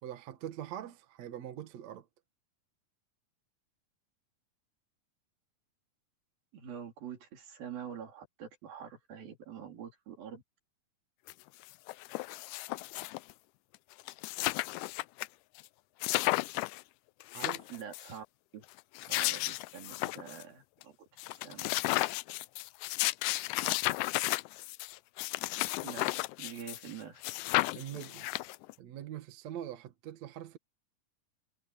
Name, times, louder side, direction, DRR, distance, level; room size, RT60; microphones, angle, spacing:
voice 1, 0.0-2.1 17.3-17.7 27.7-28.3 28.8-30.6, right 11 dB, 60° right, 2.3 m, -43 dB
voice 2, 6.5-10.4 17.7-18.3 18.5-18.6 19.0-21.0 21.4-21.7 25.8-26.0 26.4-27.2, right 8 dB, 75° right, 5.5 m, -45 dB
sound 1, 11.3-11.4 11.6-13.3 13.7-13.8 14.0-15.3 15.6-15.7 16.0-16.8 17.2-18.1 18.8-20.4 20.8-20.9 21.2-26.9 27.2-28.7, left 20 dB, 85° left, 1.8 m, -33 dB
omnidirectional pair, 4.2 m